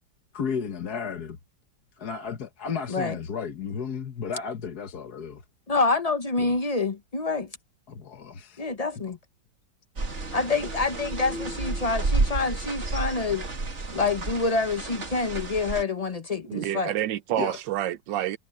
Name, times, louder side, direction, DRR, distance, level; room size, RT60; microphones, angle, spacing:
voice 1, 0.3-1.4 2.0-5.4 6.4-6.5 7.9-8.7 16.5-16.6 17.4-17.6, left 6 dB, 60° left, 1.9 m, -33 dB
voice 2, 5.7-7.5 8.6-9.2 10.3-13.4 13.9-16.9, left 3 dB, 35° left, 0.6 m, -27 dB
sound 1, 10.0-15.8, right 3 dB, 40° right, 2.4 m, -31 dB
voice 3, 16.5-18.4, right 12 dB, 80° right, 1.4 m, -28 dB
omnidirectional pair, 2.0 m